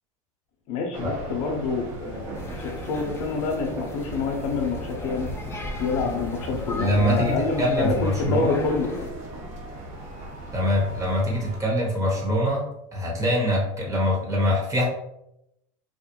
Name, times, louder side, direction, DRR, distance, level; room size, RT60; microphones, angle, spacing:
voice 1, 0.7-5.3 5.8-8.9, left 4 dB, 60° left, 2 dB, 0.6 m, -27 dB
sound 1, 0.9-11.6, right 2 dB, 60° right, 0.8 m, -38 dB
sound 2, 2.3-9.1, left 2 dB, 15° left, 0.4 m, -36 dB
voice 2, 6.8-8.5 10.5-12.6 12.9-14.9, equal, 20° right, -2 dB, 0.9 m, -24 dB
2.3 x 2.0 x 2.9 m, 0.81 s
hypercardioid pair, 105°, 17 cm